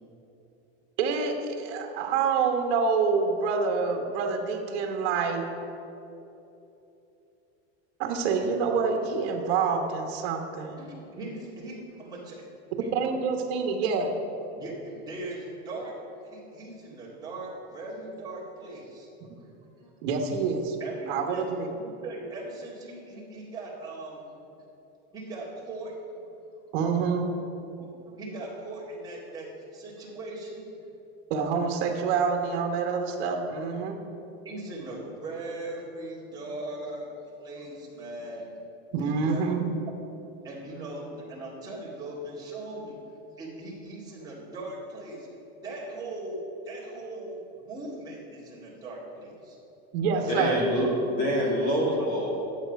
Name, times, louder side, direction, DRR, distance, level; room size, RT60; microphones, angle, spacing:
voice 1, 1.0-5.4 8.0-10.8 12.9-14.1 20.0-20.8 21.1-21.7 26.7-27.3 31.3-34.0 38.9-39.7 49.9-50.6, right 5 dB, 60° right, 3 dB, 1.3 m, -27 dB
voice 2, 10.8-12.4 12.8-12.9 14.5-19.1 19.4-19.9 20.8-21.5 21.7-24.4 25.1-25.9 27.8-30.8 34.4-37.1 37.4-38.5 39.0-39.5 40.4-43.0 43.4-45.3 45.6-46.4 46.6-49.6 50.3-50.4 51.9-52.1, right 2 dB, 10° right, -7 dB, 2.0 m, -39 dB
voice 3, 50.3-52.3, equal, 25° left, -4 dB, 2.0 m, -26 dB
11.0 x 7.5 x 5.2 m, 3.0 s
supercardioid pair, 175°, 34 cm